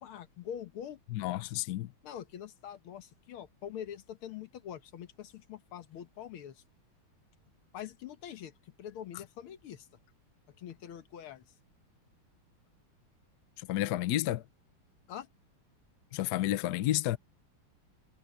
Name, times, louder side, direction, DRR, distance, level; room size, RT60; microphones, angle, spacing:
voice 1, 0.0-1.0 2.0-6.6 7.7-9.9 10.6-11.5 13.8-13.9 15.1-15.3, left 9 dB, 85° left, 2.0 m, -44 dB
voice 2, 1.1-1.9 13.6-14.4 16.1-17.2, left 14 dB, 65° left, 1.0 m, -31 dB
omnidirectional pair, 2.3 m